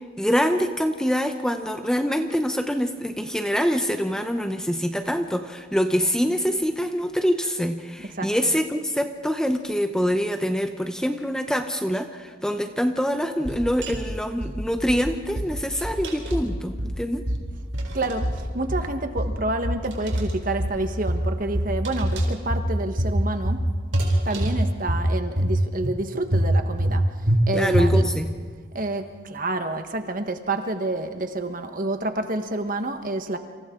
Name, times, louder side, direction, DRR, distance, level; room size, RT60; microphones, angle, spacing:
voice 1, 0.2-17.2 27.5-28.3, equal, 5° left, 6 dB, 0.8 m, -25 dB
voice 2, 8.0-8.3 17.9-23.6 24.2-27.0 27.5-28.1 28.7-33.4, right 2 dB, 45° right, 7 dB, 1.4 m, -28 dB
sound 1, 13.4-14.1 14.4-15.0 15.4-16.0 16.3-17.0 17.3-17.9 18.2-18.9 19.2-19.9 20.1-20.8 21.1-21.8 22.0-22.7 23.0-23.6 23.9-24.6 24.9-25.5 25.8-25.9 26.3-27.0 27.3-27.4 27.7-28.2, equal, 65° right, 2.6 m, -24 dB
sound 2, 13.8-14.0 15.8-16.6 17.7-18.5 19.8-20.4 21.8-22.5 23.9-24.7, right 4 dB, 85° right, 4.5 m, -40 dB
29.0 x 27.0 x 3.9 m, 1.5 s
head